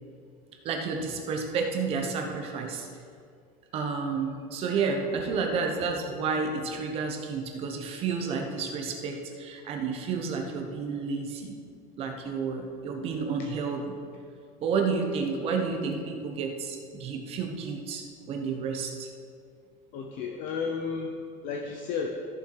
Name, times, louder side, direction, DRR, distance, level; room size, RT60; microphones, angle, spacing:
voice 1, 0.6-2.9 3.7-11.6 12.0-13.9 14.6-19.1, right 5 dB, 35° right, 3 dB, 1.1 m, -31 dB
voice 2, 19.9-22.1, left 5 dB, 45° left, 2 dB, 0.7 m, -33 dB
13.5 x 7.2 x 4.7 m, 2.3 s
cardioid pair, 180°, 18 cm